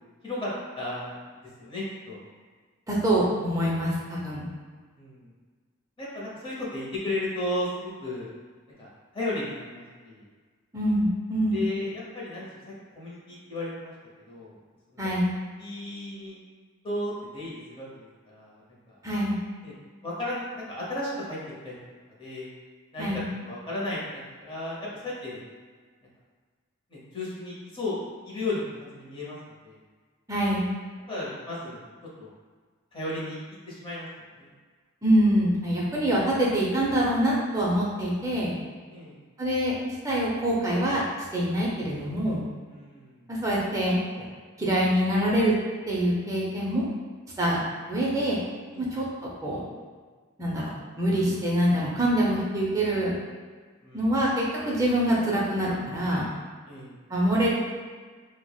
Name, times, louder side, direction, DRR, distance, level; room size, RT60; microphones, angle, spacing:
voice 1, 0.2-1.2 1.6-2.2 5.0-5.3 6.0-8.3 8.8-10.3 11.5-12.6 12.9-13.9 14.3-14.6 15.6-16.4 16.8-19.0 19.6-19.7 20.0-21.4 21.6-21.8 22.2-22.5 22.9-25.4 26.9-28.0 28.2-29.8 31.1-31.8 32.2-32.3 32.9-33.4 33.7-34.1 34.4-34.5 38.9-39.2 42.7-43.3 47.4-47.6 48.7-48.9 53.8-54.2 56.7-56.9, left 1 dB, 25° left, -6 dB, 0.7 m, -34 dB
voice 2, 2.9-4.5 10.7-11.6 15.0-15.3 19.0-19.4 23.0-23.2 30.3-30.7 35.0-38.5 39.4-39.7 40.0-41.0 41.3-42.4 43.3-44.3 44.6-45.5 45.9-46.8 47.4-47.6 47.9-48.4 48.8-49.1 49.4-49.7 50.4-50.7 51.0-53.1 53.9-56.2 57.1-57.5, right 1 dB, 15° right, -5 dB, 0.4 m, -25 dB
4.5 x 2.0 x 2.3 m, 1.5 s
head